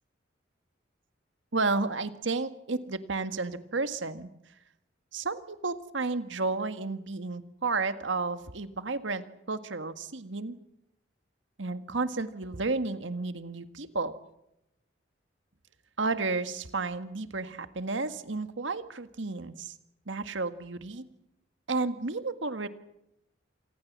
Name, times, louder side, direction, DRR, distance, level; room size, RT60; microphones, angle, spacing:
voice 1, 1.5-4.3 5.1-10.6 11.6-14.1 16.0-19.7 20.1-21.0 21.7-22.7, right 3 dB, 80° right, 10 dB, 1.7 m, -32 dB
27.0 x 19.5 x 7.5 m, 0.83 s
head